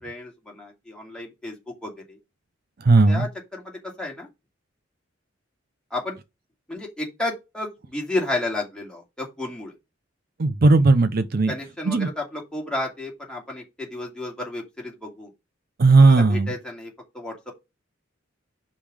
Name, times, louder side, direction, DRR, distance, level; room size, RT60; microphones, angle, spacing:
voice 1, 0.0-2.2 3.1-4.3 5.9-6.2 6.7-9.7 11.5-15.3 16.0-17.5, left 2 dB, 5° left, 2.4 m, -32 dB
voice 2, 2.8-3.3 10.4-11.5 11.9-12.1 15.8-16.5, right 3 dB, 50° right, 0.5 m, -16 dB
5.3 x 5.3 x 4.8 m
head